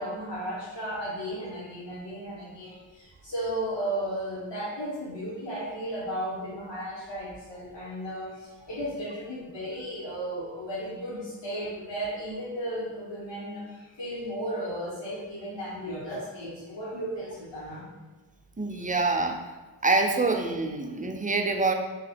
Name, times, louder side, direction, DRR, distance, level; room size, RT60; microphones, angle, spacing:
voice 1, 0.0-17.8 18.7-18.8, right 1 dB, 65° left, -8 dB, 1.0 m, -35 dB
voice 2, 18.6-19.4 19.8-21.7, right 3 dB, 20° right, 4 dB, 0.4 m, -25 dB
2.9 x 2.7 x 4.2 m, 1.3 s
cardioid pair, 45°, 47 cm